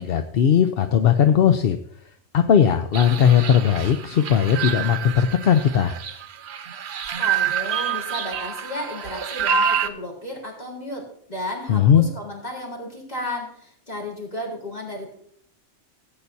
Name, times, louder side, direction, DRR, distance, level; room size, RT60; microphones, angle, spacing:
voice 1, 0.0-1.8 2.3-5.9 11.7-12.1, left 8 dB, 60° left, 7 dB, 0.8 m, -18 dB
sound 1, 2.9-9.9, right 7 dB, 65° right, 1.0 m, -27 dB
voice 2, 7.2-15.1, left 1 dB, 35° left, -2 dB, 3.9 m, -33 dB
17.0 x 8.9 x 2.7 m, 0.64 s
omnidirectional pair, 1.2 m